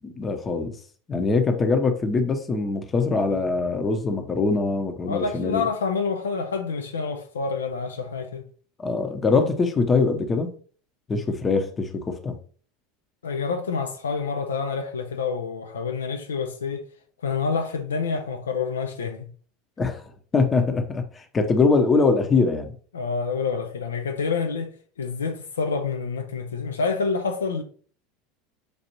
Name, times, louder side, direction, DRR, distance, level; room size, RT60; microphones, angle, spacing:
voice 1, 0.0-0.8 1.1-5.7 8.8-10.5 11.1-12.4 19.8-20.0 20.3-22.7, left 4 dB, 25° left, 0.8 m, -23 dB
voice 2, 5.1-8.5 13.2-16.8 17.2-19.2 22.9-27.6, left 5 dB, 85° left, 0.5 m, -28 dB
6.6 x 2.5 x 2.9 m
hypercardioid pair, 80°, 0 cm